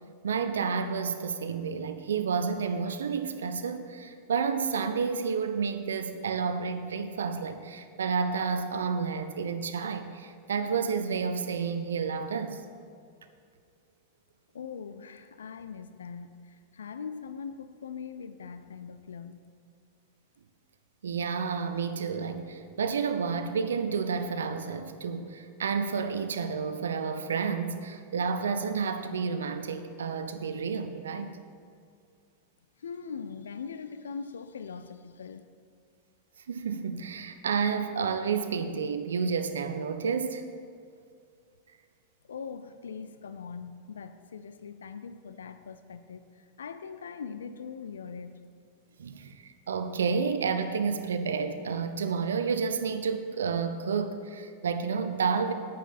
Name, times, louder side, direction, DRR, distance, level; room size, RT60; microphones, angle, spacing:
voice 1, 0.2-12.6 21.0-31.4 36.5-40.4 49.0-55.5, right 5 dB, 65° right, 9 dB, 0.6 m, -30 dB
voice 2, 14.5-19.6 32.8-35.4 42.3-48.4, left 6 dB, 70° left, 11 dB, 0.4 m, -41 dB
10.0 x 9.0 x 4.2 m, 2.3 s
figure-of-eight pair, 90°, 0 cm